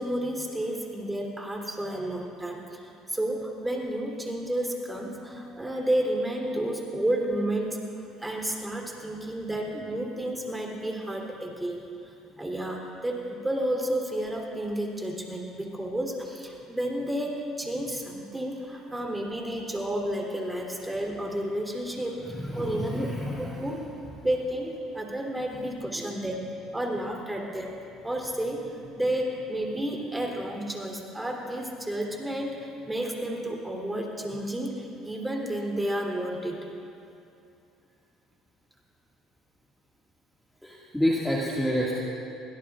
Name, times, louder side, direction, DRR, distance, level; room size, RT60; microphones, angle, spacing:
voice 1, 0.0-22.2 22.5-23.1 23.4-23.8 24.2-26.4 26.7-27.7 28.0-36.7, right 1 dB, 10° right, 0 dB, 3.4 m, -31 dB
voice 2, 22.2-23.7 25.9-26.1 40.6-41.9, equal, 5° left, -5 dB, 2.0 m, -29 dB
23.0 x 17.5 x 2.5 m, 2.7 s
hypercardioid pair, 70°, 0 cm